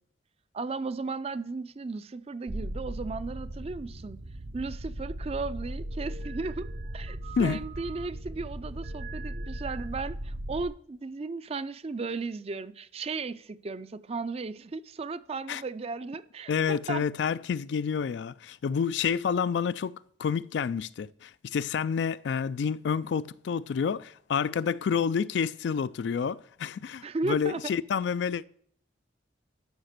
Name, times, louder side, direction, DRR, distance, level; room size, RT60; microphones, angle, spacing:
voice 1, 0.5-4.2 4.5-6.7 6.9-17.1 27.0-27.7, right 3 dB, 35° right, 0.4 m, -35 dB
sound 1, 2.5-10.7, right 1 dB, 60° right, 0.8 m, -38 dB
voice 2, 16.5-28.4, left 6 dB, 65° left, 0.3 m, -29 dB
11.5 x 5.8 x 6.6 m
head